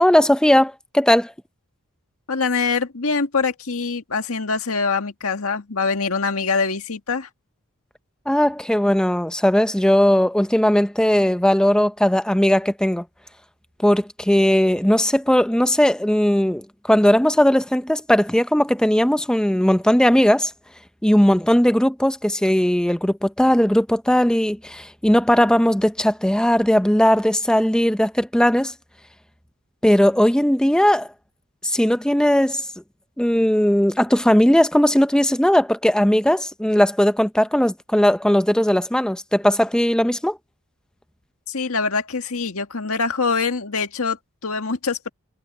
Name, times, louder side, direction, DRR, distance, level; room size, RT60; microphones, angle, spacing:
voice 1, 0.0-1.3 8.3-13.0 13.8-20.5 21.0-28.7 29.8-31.1 31.6-32.7 33.2-40.4, equal, 5° left, 0.6 m, -18 dB
voice 2, 2.3-7.3 41.5-45.1, left 4 dB, 75° left, 1.8 m, -24 dB
head